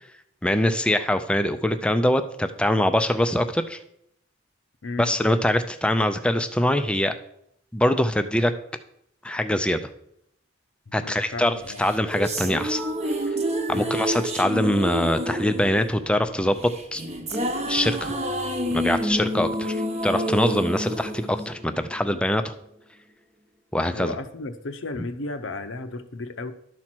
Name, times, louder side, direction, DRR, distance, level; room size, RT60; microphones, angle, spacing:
voice 1, 0.4-3.8 5.0-7.1 7.7-8.5 9.2-9.9 10.9-12.8 13.7-17.0 17.7-18.2 18.7-22.5 23.7-24.1, left 1 dB, 5° left, 0.5 m, -23 dB
voice 2, 4.8-5.2 10.9-11.9 13.7-14.0 23.9-26.5, left 3 dB, 70° left, 0.7 m, -34 dB
sound 1, 11.7-22.2, equal, 35° right, 1.0 m, -28 dB
11.5 x 4.4 x 6.0 m
head